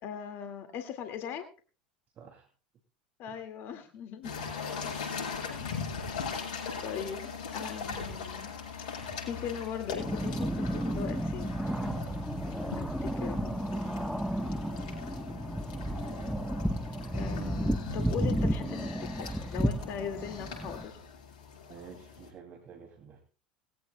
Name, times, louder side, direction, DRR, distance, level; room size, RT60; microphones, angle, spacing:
voice 1, 0.0-1.5 3.2-4.4 5.5-5.7 6.8-8.5 8.8-11.6 12.8-13.7 17.1-21.0, left 8 dB, 50° left, 6 dB, 2.0 m, -40 dB
voice 2, 2.2-2.5 3.3-3.4 4.8-4.9 9.0-9.2 21.7-23.2, right 7 dB, 40° right, 4 dB, 2.6 m, -50 dB
sound 1, 4.2-22.3, left 5 dB, 65° left, 7.2 m, -40 dB
sound 2, 9.9-20.8, right 1 dB, ahead, 1.0 m, -32 dB
20.5 x 16.0 x 2.2 m, 0.36 s
hypercardioid pair, 80°, 5 cm